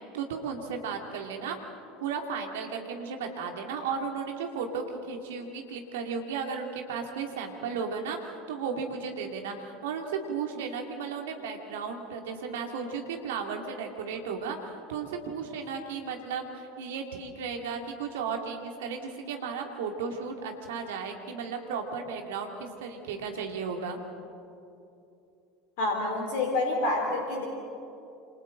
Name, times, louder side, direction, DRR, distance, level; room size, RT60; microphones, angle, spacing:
voice 1, 0.1-1.6 2.0-24.0, right 5 dB, 70° right, 3 dB, 2.5 m, -35 dB
voice 2, 25.8-27.5, left 2 dB, 60° left, 1 dB, 3.4 m, -28 dB
28.0 x 27.0 x 3.9 m, 2.7 s
figure-of-eight pair, 70°, 0 cm